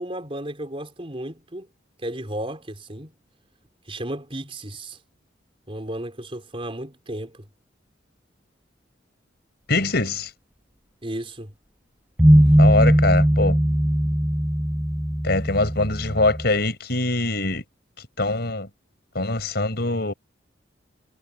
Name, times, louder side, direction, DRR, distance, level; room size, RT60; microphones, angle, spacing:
voice 1, 0.0-1.7 2.0-3.1 3.9-5.0 5.7-7.4 11.0-11.5, right 1 dB, 30° right, 4.1 m, -33 dB
voice 2, 9.7-10.3 12.6-13.6 15.2-17.6 18.2-18.7 19.1-20.1, left 2 dB, 55° left, 5.5 m, -23 dB
sound 1, 12.2-16.5, equal, 10° right, 1.9 m, -19 dB
head